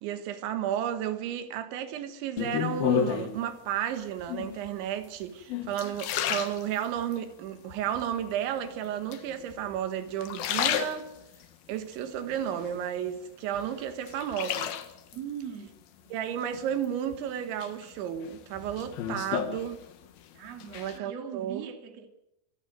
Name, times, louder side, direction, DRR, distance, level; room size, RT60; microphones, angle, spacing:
voice 1, 0.0-11.1 11.7-14.8 16.1-19.8 20.8-21.7, right 10 dB, 85° right, 3.8 m, -33 dB
sound 1, 2.4-3.4 4.2-4.7 5.2-7.2 7.7-8.3 9.1-9.8 10.1-11.5 11.9-13.2 13.6-15.2 16.6-17.2 17.6-20.2 20.5-21.0, left 9 dB, 65° left, 3.0 m, -32 dB
voice 2, 15.1-15.8 20.3-22.1, right 8 dB, 40° right, 3.2 m, -40 dB
25.5 x 14.5 x 9.4 m
omnidirectional pair, 5.2 m